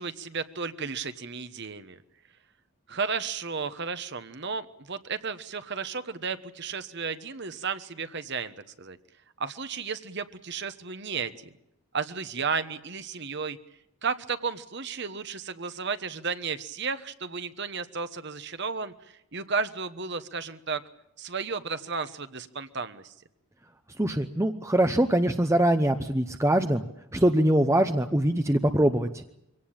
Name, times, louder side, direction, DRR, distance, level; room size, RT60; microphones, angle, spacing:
voice 1, 0.0-2.0 2.9-9.0 9.4-11.5 11.9-13.6 14.0-20.8 21.2-23.1, right 5 dB, 50° right, 11 dB, 1.2 m, -33 dB
voice 2, 24.0-26.8 27.1-29.2, right 1 dB, 15° right, 7 dB, 0.8 m, -23 dB
24.5 x 17.5 x 8.8 m, 0.84 s
head